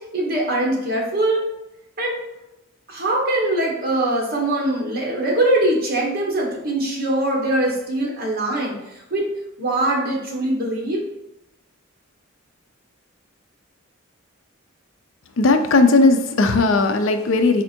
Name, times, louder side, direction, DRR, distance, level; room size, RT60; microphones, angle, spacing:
voice 1, 0.1-1.4 2.0-2.1 2.9-8.7 9.1-9.3 9.6-11.0, right 1 dB, 45° right, -2 dB, 1.1 m, -22 dB
voice 2, 15.4-17.6, left 3 dB, 65° left, 7 dB, 0.5 m, -16 dB
4.3 x 2.5 x 4.3 m, 0.89 s
head